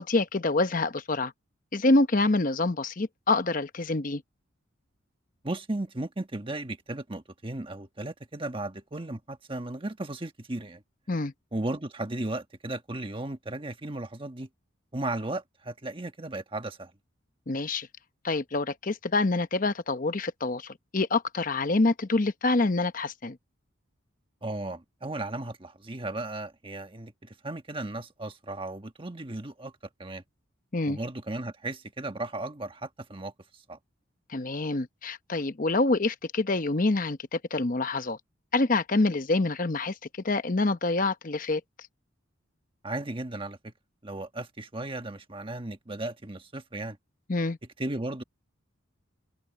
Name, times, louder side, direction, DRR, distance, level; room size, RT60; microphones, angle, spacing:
voice 1, 0.0-1.3 1.7-4.2 11.1-11.3 17.5-17.9 18.2-23.4 30.7-31.0 34.3-38.2 38.5-40.0 40.2-41.6 47.3-47.6, left 2 dB, 40° left, 0.9 m, -26 dB
voice 2, 5.4-10.8 11.5-14.5 14.9-16.9 24.4-29.7 30.0-30.2 30.9-33.3 33.7-33.8 42.8-43.7 44.0-47.0 47.8-48.2, right 2 dB, 25° right, 1.3 m, -35 dB
open air
head